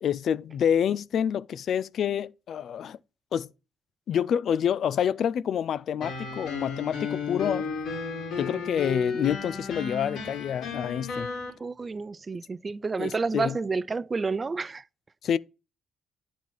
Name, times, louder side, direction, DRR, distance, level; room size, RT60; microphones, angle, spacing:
voice 1, 0.0-3.0 3.3-3.5 4.1-7.7 8.4-11.3 13.0-13.6 15.2-15.4, left 9 dB, 65° left, 0.3 m, -27 dB
sound 1, 6.0-11.5, left 4 dB, 85° left, 2.3 m, -33 dB
voice 2, 11.6-14.8, right 4 dB, 30° right, 0.3 m, -30 dB
8.7 x 4.0 x 4.6 m
cardioid pair, 90°, 0 cm